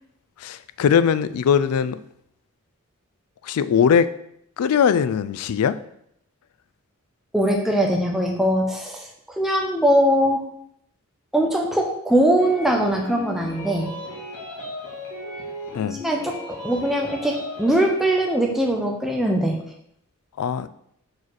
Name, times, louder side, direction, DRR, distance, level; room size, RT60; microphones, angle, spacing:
voice 1, 0.4-2.0 3.4-4.1 4.6-5.8 15.7-16.0 20.4-20.7, left 7 dB, 85° left, 14 dB, 0.3 m, -20 dB
voice 2, 7.3-10.4 11.3-13.9 15.9-19.6, right 1 dB, ahead, 0 dB, 0.7 m, -21 dB
sound 1, 12.4-17.8, left 1 dB, 50° left, 2.0 m, -36 dB
4.7 x 4.2 x 4.6 m, 0.73 s
head